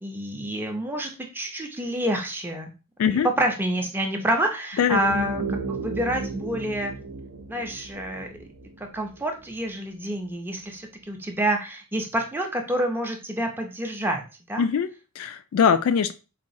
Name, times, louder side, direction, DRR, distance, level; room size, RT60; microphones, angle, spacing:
voice 1, 0.0-2.7 3.1-5.4 5.7-6.9 7.5-8.3 8.8-14.2 14.5-14.6, right 1 dB, 10° right, 0.5 m, -28 dB
sound 1, 4.9-9.7, right 3 dB, 75° right, 0.5 m, -34 dB
voice 2, 14.6-16.1, left 7 dB, 70° left, 0.3 m, -22 dB
4.0 x 2.3 x 2.6 m
head